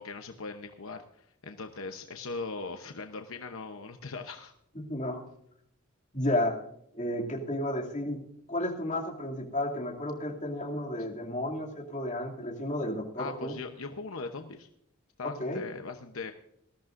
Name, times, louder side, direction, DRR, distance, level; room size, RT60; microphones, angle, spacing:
voice 1, 0.0-4.5 13.2-14.7 15.2-16.3, left 4 dB, 65° left, 6 dB, 0.9 m, -40 dB
voice 2, 4.8-5.2 6.1-6.6 6.9-8.2 8.5-13.5 15.4-15.6, left 1 dB, 35° left, 0 dB, 2.5 m, -32 dB
19.5 x 14.0 x 2.6 m, 0.73 s
head